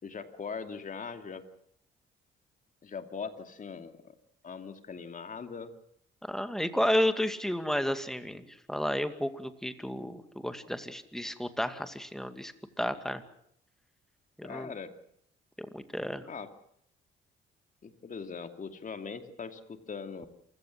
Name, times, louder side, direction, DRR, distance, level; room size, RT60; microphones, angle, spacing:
voice 1, 0.0-1.4 2.8-4.1 4.4-5.7 14.4-14.9 16.3-16.5 17.8-20.3, left 5 dB, 40° left, 8 dB, 2.7 m, -41 dB
voice 2, 6.2-13.2 14.4-14.7 15.6-16.3, left 1 dB, ahead, 9 dB, 2.3 m, -32 dB
27.5 x 17.0 x 7.7 m, 0.70 s
cardioid pair, 90°, 20 cm